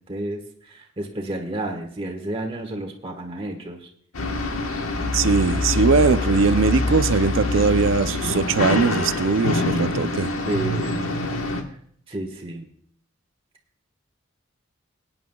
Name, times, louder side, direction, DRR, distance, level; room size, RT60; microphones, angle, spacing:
voice 1, 0.1-3.8 10.5-11.1 12.1-12.7, right 1 dB, 25° right, 1.4 m, -31 dB
sound 1, 4.1-11.6, left 2 dB, 80° left, 1.3 m, -25 dB
voice 2, 5.1-10.3, right 4 dB, 65° right, 0.5 m, -20 dB
21.5 x 9.6 x 2.3 m
head